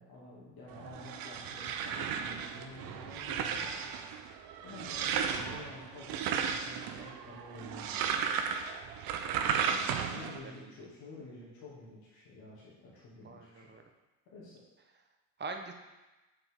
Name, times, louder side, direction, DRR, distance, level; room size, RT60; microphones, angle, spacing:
voice 1, 0.0-3.9 4.6-8.5 10.0-13.7 14.3-14.6, left 2 dB, 70° left, -6 dB, 2.4 m, -50 dB
sound 1, 0.7-10.4, right 7 dB, 65° right, 0.7 m, -35 dB
voice 2, 13.2-13.8 15.4-15.7, right 3 dB, 25° right, 4 dB, 0.9 m, -44 dB
7.8 x 4.5 x 3.7 m, 1.1 s
supercardioid pair, 75°, 38 cm